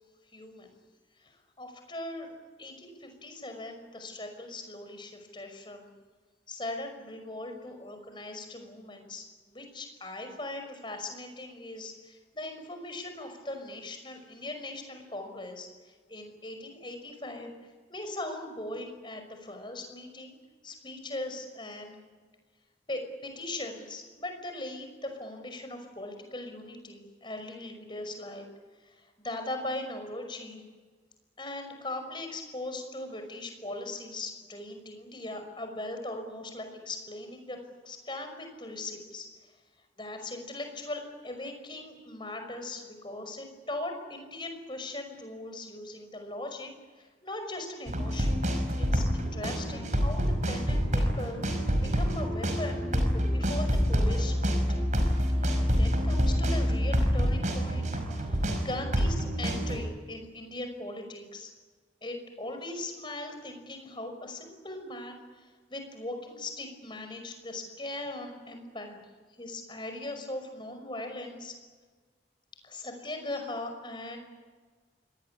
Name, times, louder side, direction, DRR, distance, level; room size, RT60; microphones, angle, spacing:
voice 1, 0.3-0.7 1.2-2.3 2.6-5.9 6.5-15.7 16.1-17.5 17.9-20.4 20.6-22.0 22.9-28.5 28.9-30.7 31.4-37.6 37.8-39.3 40.0-46.7 47.0-48.5 48.8-54.8 55.4-57.9 58.2-61.5 62.0-65.2 65.7-69.0 69.4-71.5 72.6-74.3, left 2 dB, 25° left, 6 dB, 5.6 m, -39 dB
sound 1, 47.9-59.8, equal, 45° right, 5.3 m, -27 dB
26.5 x 20.0 x 9.9 m, 1.4 s
head